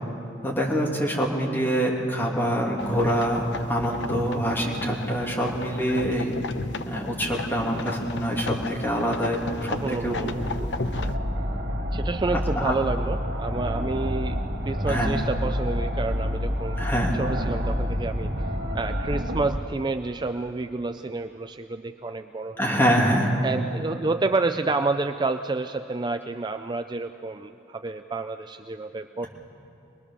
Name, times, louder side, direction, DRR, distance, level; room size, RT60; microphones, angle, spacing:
voice 1, 0.4-6.4 6.8-10.3 10.6-10.7 12.6-12.7 14.9-15.2 16.8-17.2 22.6-23.3, equal, 10° left, -3 dB, 3.0 m, -25 dB
sound 1, 2.8-11.2, left 3 dB, 80° left, 0.7 m, -34 dB
sound 2, 9.4-19.6, equal, 75° right, 1.9 m, -29 dB
voice 2, 9.8-10.4 11.9-14.4 14.6-16.8 17.1-18.3 18.7-22.6 23.4-29.3, right 3 dB, 25° right, 8 dB, 0.4 m, -29 dB
24.5 x 20.0 x 6.9 m, 2.9 s
head